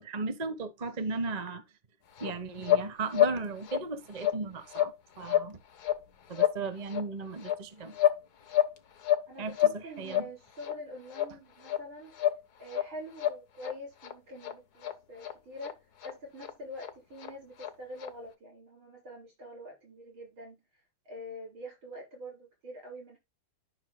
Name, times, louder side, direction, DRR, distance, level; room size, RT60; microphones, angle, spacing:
voice 1, 0.0-1.6 2.2-5.6 6.3-8.0 9.4-10.3, right 4 dB, 25° right, 1.0 m, -36 dB
sound 1, 2.2-2.3 2.6-2.9 3.1-3.4 3.6-3.8 4.1-4.4 4.7-4.9 5.2-5.5 5.8-6.0 6.3-6.6 6.9-7.0 7.4-8.2 8.5-9.3 9.5-9.8 10.0-10.3 10.6-10.7 11.1-11.3 11.6-11.8 12.1-12.4 12.7-12.9 13.2-13.7 14.0-14.1 14.4-14.5 14.8-14.9 15.2-15.3 15.6-15.7 16.0-16.1 16.4-16.5 16.8-16.9 17.2-17.3 17.6-17.7 18.0-18.1, left 11 dB, 55° left, 1.7 m, -28 dB
voice 2, 9.3-12.2 12.6-15.8 16.0-23.2, equal, 75° right, 7.4 m, -45 dB
13.0 x 6.1 x 2.2 m
omnidirectional pair, 2.2 m